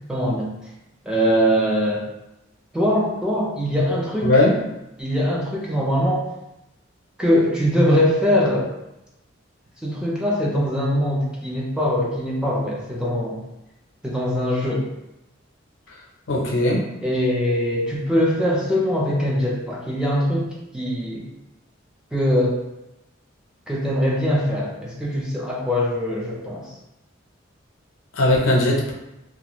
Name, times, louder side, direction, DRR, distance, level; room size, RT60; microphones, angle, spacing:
voice 1, 0.1-0.5 1.0-2.1 2.7-4.3 5.0-6.3 7.2-8.7 9.8-13.4 14.0-14.9 17.0-20.5 20.7-21.2 22.1-22.6 23.7-26.7, equal, 5° right, -4 dB, 0.5 m, -22 dB
voice 2, 4.2-4.6 16.3-16.8 28.1-28.9, left 1 dB, 75° left, -2 dB, 0.6 m, -18 dB
2.4 x 2.4 x 3.0 m, 0.91 s
head